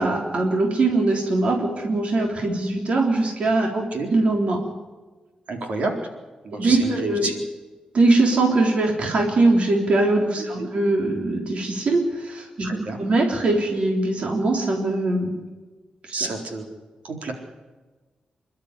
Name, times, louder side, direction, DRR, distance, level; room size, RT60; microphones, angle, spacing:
voice 1, 0.0-3.7 4.1-4.6 6.6-7.3 7.9-15.4 16.1-16.2, right 2 dB, 55° right, 1 dB, 3.6 m, -21 dB
voice 2, 3.7-4.1 5.5-6.1 6.4-7.4 10.4-10.7 12.6-13.0 16.1-16.7 17.0-17.3, right 2 dB, 70° right, 2 dB, 4.1 m, -29 dB
28.0 x 12.5 x 10.0 m, 1.3 s
wide cardioid pair, 145°, 2 cm